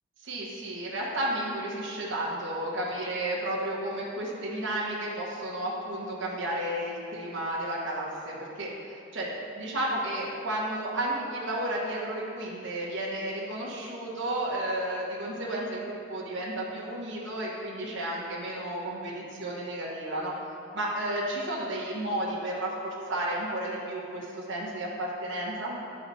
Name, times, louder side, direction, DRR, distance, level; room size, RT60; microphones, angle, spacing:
voice 1, 0.2-9.3 9.5-20.3 20.7-25.8, right 1 dB, 60° right, -4 dB, 1.3 m, -32 dB
9.8 x 4.9 x 4.1 m, 2.7 s
head